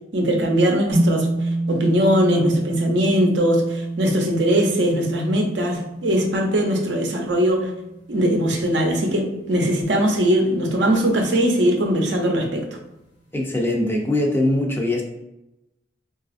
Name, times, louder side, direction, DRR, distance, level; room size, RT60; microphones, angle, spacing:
voice 1, 0.1-1.3 1.7-7.7 8.1-12.6, equal, 70° right, 2 dB, 0.6 m, -20 dB
sound 1, 0.9-9.4, right 2 dB, 70° left, 1.0 m, -27 dB
voice 2, 13.3-15.0, left 1 dB, 15° left, 0 dB, 0.4 m, -21 dB
3.9 x 2.4 x 2.5 m, 0.91 s
head